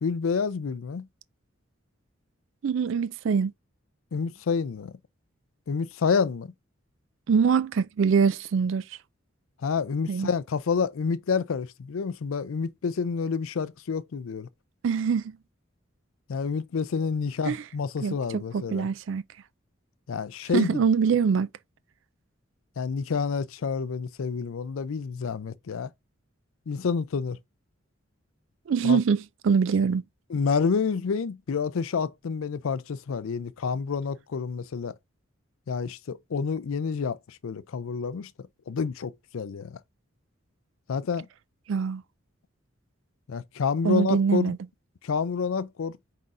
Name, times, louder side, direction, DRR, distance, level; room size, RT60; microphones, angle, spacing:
voice 1, 0.0-1.1 4.1-4.9 5.7-6.5 9.6-14.5 16.3-18.9 20.1-20.8 22.8-25.9 26.7-27.4 28.8-29.0 30.3-34.9 35.7-38.3 38.7-39.8 40.9-41.3 43.3-44.5 45.0-46.0, left 5 dB, 85° left, 0.4 m, -28 dB
voice 2, 2.6-3.5 7.3-8.8 10.1-10.3 14.8-15.4 17.5-17.6 18.0-19.2 20.5-21.5 28.7-30.0 41.7-42.0 43.8-44.6, right 6 dB, 70° right, 0.4 m, -24 dB
5.6 x 3.7 x 2.5 m
head